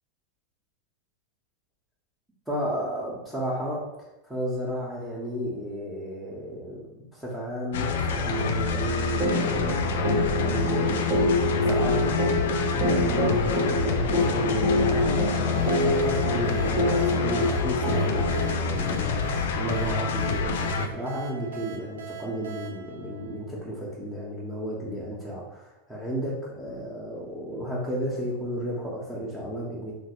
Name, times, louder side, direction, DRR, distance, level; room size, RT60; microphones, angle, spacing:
voice 1, 2.5-11.4 11.7-12.2 12.7-29.9, right 1 dB, ahead, -8 dB, 0.8 m, -33 dB
sound 1, 7.7-20.9, left 5 dB, 70° left, 0.3 m, -27 dB
sound 2, 9.2-18.5, left 1 dB, 50° right, 0.9 m, -26 dB
sound 3, 15.5-24.0, right 6 dB, 80° right, 0.5 m, -42 dB
3.0 x 2.4 x 3.0 m, 0.98 s
hypercardioid pair, 100°, 0 cm